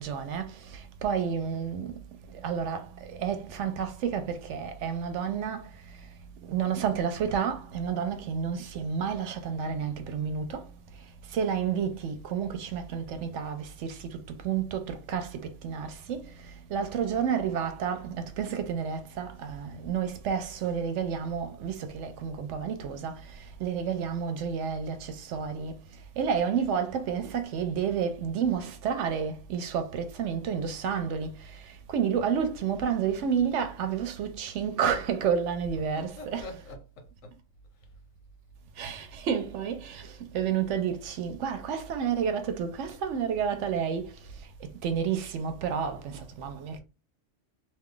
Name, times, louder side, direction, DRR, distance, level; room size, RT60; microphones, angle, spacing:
voice 1, 0.0-1.9 2.3-5.7 6.5-10.7 11.3-16.3 16.7-23.2 23.6-25.8 26.2-31.6 31.9-36.5 38.8-44.1 44.6-46.8, right 7 dB, 75° right, 0.9 m, -30 dB
voice 2, 35.7-37.4, left 2 dB, 85° left, 1.2 m, -45 dB
2.6 x 2.4 x 3.6 m
omnidirectional pair, 1.3 m